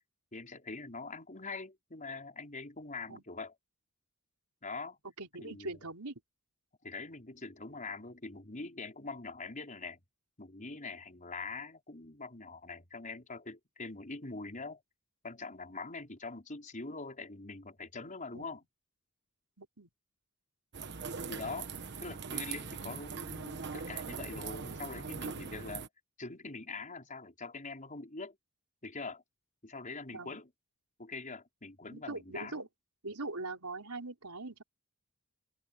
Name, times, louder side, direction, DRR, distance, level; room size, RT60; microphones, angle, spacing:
voice 1, 0.3-3.5 4.6-5.0 5.4-5.8 6.8-10.0 10.4-14.8 15.2-18.6 21.3-21.7 22.0-25.9 26.2-28.4 28.8-29.2 29.6-30.5 31.0-32.7, left 3 dB, 35° left, 5.3 m, -43 dB
voice 2, 5.2-6.2 18.3-18.5 19.6-19.9 30.1-30.4 31.9-32.7 33.0-34.6, right 2 dB, 90° right, 4.3 m, -42 dB
sound 1, 20.7-25.9, right 5 dB, 50° right, 1.2 m, -41 dB
open air
head